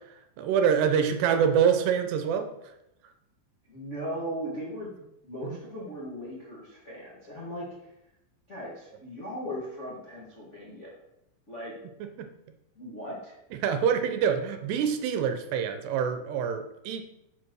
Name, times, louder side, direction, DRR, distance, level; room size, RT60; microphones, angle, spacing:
voice 1, 0.4-2.5 12.2-12.3 13.6-17.0, right 7 dB, 80° right, 7 dB, 2.7 m, -25 dB
voice 2, 3.7-4.9 5.2-7.9 8.5-10.9 11.5-11.7 12.7-13.3, equal, 65° left, -6 dB, 0.7 m, -38 dB
7.7 x 5.0 x 6.3 m, 0.85 s
omnidirectional pair, 5.1 m